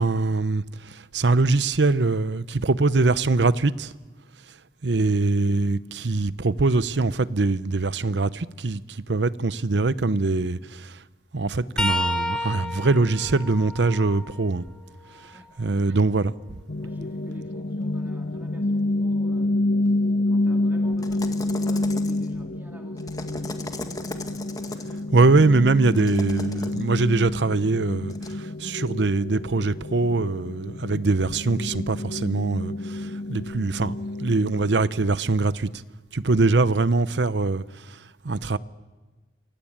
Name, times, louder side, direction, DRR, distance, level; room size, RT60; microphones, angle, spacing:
voice 1, 0.0-3.9 4.8-11.0 11.3-14.6 15.2-15.3 15.6-16.3 25.1-35.8 36.1-38.6, right 3 dB, 85° right, 0.8 m, -23 dB
sound 1, 11.8-15.5 16.1-18.0 20.9-21.1 22.3-22.5 23.8-23.9, left 1 dB, 5° left, 2.3 m, -33 dB
voice 2, 15.3-15.7 16.8-19.9 20.3-23.9, equal, 10° right, 2.7 m, -48 dB
sound 2, 16.7-34.8, left 2 dB, 70° left, 1.2 m, -28 dB
sound 3, 21.0-22.4 23.0-25.0 25.9-26.8 28.1-28.3, left 2 dB, 20° left, 1.9 m, -37 dB
28.0 x 23.5 x 8.9 m
head